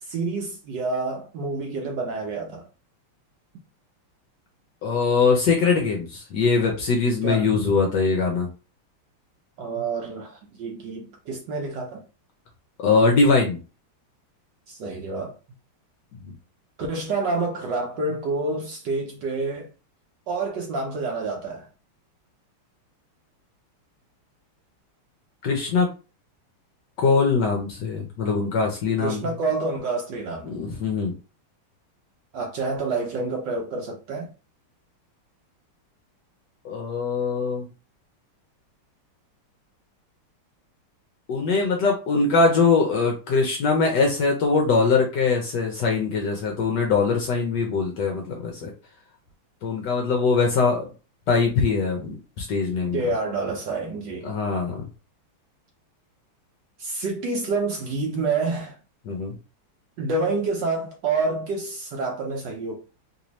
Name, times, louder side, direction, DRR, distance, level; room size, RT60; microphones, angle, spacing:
voice 1, 0.0-2.7 7.2-7.5 9.6-12.0 14.7-15.3 16.8-19.7 20.3-21.7 29.0-30.6 32.3-34.3 52.9-54.3 56.8-58.8 60.0-62.8, right 3 dB, 70° right, 1.1 m, -28 dB
voice 2, 4.8-8.5 12.8-13.6 16.2-16.3 25.4-25.9 27.0-29.3 30.4-31.1 36.6-37.7 41.3-48.7 49.6-50.8 51.3-53.1 54.2-54.8 59.1-59.3, left 4 dB, 70° left, 1.1 m, -22 dB
3.4 x 2.6 x 3.0 m
omnidirectional pair, 2.4 m